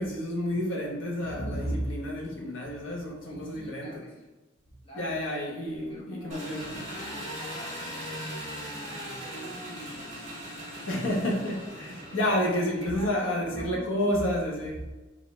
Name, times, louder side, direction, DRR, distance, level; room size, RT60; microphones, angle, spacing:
voice 1, 0.0-4.0 4.9-6.7 10.9-14.8, left 1 dB, 80° left, -2 dB, 1.2 m, -30 dB
voice 2, 3.2-4.3 4.8-5.2 5.9-8.5 8.8-10.3 10.6-11.2 12.1-14.7, equal, 25° left, -4 dB, 1.2 m, -47 dB
Engine, 6.3-12.8, equal, 35° right, 1.2 m, -39 dB
5.1 x 2.8 x 3.3 m, 1.2 s
head